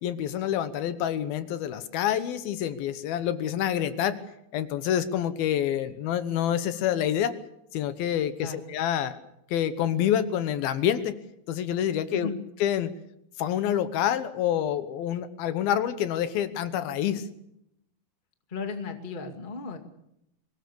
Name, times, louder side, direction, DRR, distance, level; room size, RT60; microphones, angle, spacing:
voice 1, 0.0-4.2 4.5-7.3 7.7-9.2 9.5-11.2 11.5-12.3 12.6-12.9 13.4-17.3, left 10 dB, 75° left, 12 dB, 2.8 m, -27 dB
voice 2, 18.5-19.8, left 4 dB, 20° left, 5 dB, 1.5 m, -35 dB
23.5 x 19.5 x 6.9 m, 0.80 s
omnidirectional pair, 4.5 m